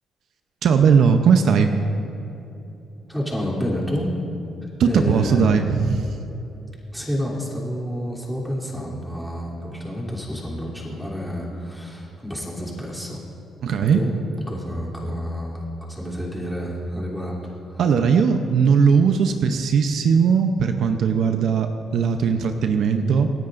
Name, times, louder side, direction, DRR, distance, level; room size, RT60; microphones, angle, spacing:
voice 1, 0.6-1.7 4.8-6.2 13.6-14.0 17.8-23.3, right 6 dB, 70° right, 6 dB, 0.7 m, -18 dB
voice 2, 3.1-4.1 4.8-5.6 6.9-13.2 13.9-14.1 14.5-15.6 15.9-17.8, equal, ahead, -4 dB, 3.1 m, -29 dB
27.5 x 9.7 x 2.6 m, 2.9 s
cardioid pair, 90°, 0 cm